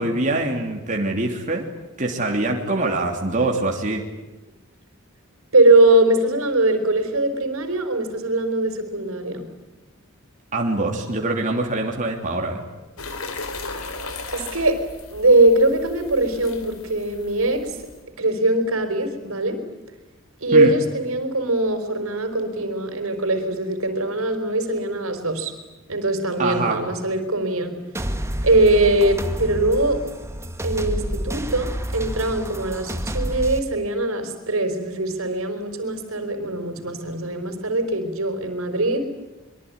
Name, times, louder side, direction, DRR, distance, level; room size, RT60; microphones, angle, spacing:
voice 1, 0.0-1.6 2.0-4.0 10.5-12.6 20.5-20.7 26.4-26.8, right 2 dB, 35° right, 1 dB, 3.1 m, -24 dB
voice 2, 5.5-9.5 14.3-14.8 15.1-17.7 18.2-19.6 20.4-25.5 25.9-27.8 28.4-30.0 30.6-39.1, right 2 dB, 75° right, 8 dB, 4.7 m, -21 dB
sound 1, 13.0-18.0, left 3 dB, 75° left, 4.3 m, -36 dB
sound 2, 27.9-33.6, equal, 15° right, 1.9 m, -29 dB
24.5 x 23.5 x 9.7 m, 1.1 s
head